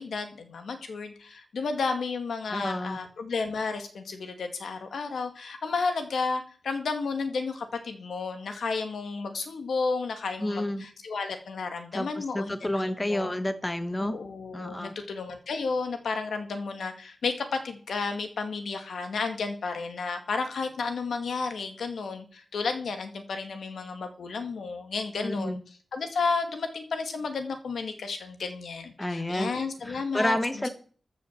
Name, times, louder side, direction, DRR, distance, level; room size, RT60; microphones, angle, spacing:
voice 1, 0.0-12.8 13.1-13.3 14.0-25.6 25.9-30.6, left 4 dB, 85° left, 6 dB, 2.3 m, -32 dB
voice 2, 2.5-3.0 10.4-10.8 11.9-14.1 14.5-14.9 25.2-25.6 29.0-30.7, left 1 dB, 10° left, 10 dB, 1.0 m, -30 dB
14.0 x 6.3 x 7.4 m, 0.43 s
wide cardioid pair, 170°, 0 cm